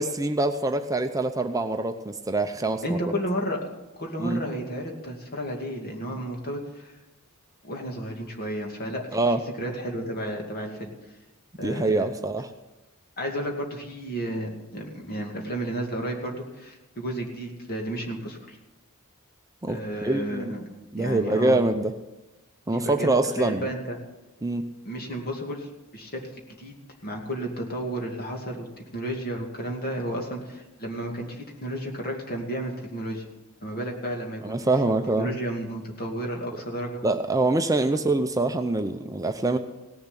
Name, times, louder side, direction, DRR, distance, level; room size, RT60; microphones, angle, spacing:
voice 1, 0.0-3.1 4.2-4.4 9.1-9.4 11.6-12.5 19.6-20.5 20.9-21.9 22.7-23.7 24.4-24.7 34.4-35.3 37.0-39.6, right 2 dB, 15° right, 7 dB, 0.6 m, -25 dB
voice 2, 2.8-3.6 4.0-6.9 7.6-9.2 9.6-10.9 11.6-12.1 13.2-18.6 19.7-20.6 21.0-21.6 22.7-24.0 24.8-26.7 27.0-28.7 28.9-33.2 33.6-34.6 35.2-37.0, right 1 dB, 45° left, 1 dB, 2.5 m, -32 dB
17.5 x 7.2 x 9.7 m, 1.1 s
head